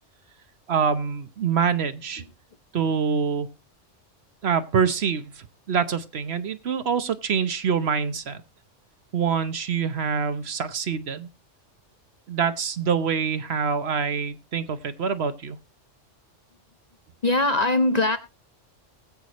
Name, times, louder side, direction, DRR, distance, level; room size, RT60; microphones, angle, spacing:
voice 1, 0.7-2.2 2.7-3.5 4.4-8.4 9.1-11.3 12.3-15.6, right 6 dB, 60° right, 1.1 m, -25 dB
voice 2, 17.2-18.2, left 2 dB, 40° left, 0.7 m, -21 dB
20.0 x 8.0 x 3.0 m
omnidirectional pair, 1.3 m